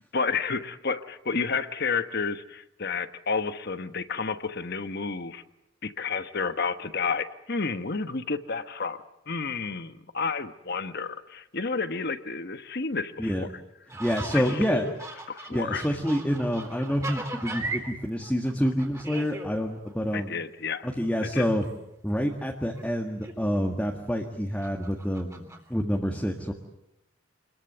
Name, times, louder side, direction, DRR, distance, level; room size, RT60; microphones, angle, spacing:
voice 1, 0.1-5.4 5.8-13.5 14.3-14.9 15.3-15.9 20.1-20.9 21.2-21.4, left 4 dB, 50° left, 10 dB, 1.2 m, -31 dB
sound 1, 13.9-17.9 18.2-19.5 19.9-20.0 21.3-21.4 21.6-21.7 22.1-22.2 22.6-22.8 23.2-23.8 24.6-25.6, right 2 dB, 15° right, 3.6 m, -38 dB
voice 2, 14.0-14.9 15.5-20.3 20.8-21.6 22.0-26.5, equal, 5° left, 1 dB, 1.8 m, -27 dB
27.5 x 21.5 x 8.1 m, 0.83 s
head